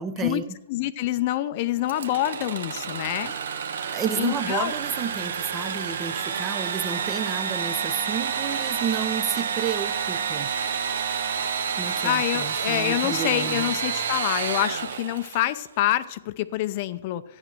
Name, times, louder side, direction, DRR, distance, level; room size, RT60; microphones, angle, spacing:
voice 1, 0.0-0.6 3.9-10.5 11.8-13.7, right 7 dB, 15° right, 13 dB, 0.7 m, -31 dB
voice 2, 0.7-3.3 4.2-4.7 12.0-17.2, left 14 dB, 35° left, 13 dB, 0.6 m, -26 dB
Engine / Sawing, 1.9-15.6, right 7 dB, 70° right, 1.2 m, -29 dB
12.0 x 9.9 x 7.7 m, 0.91 s
hypercardioid pair, 155°, 0 cm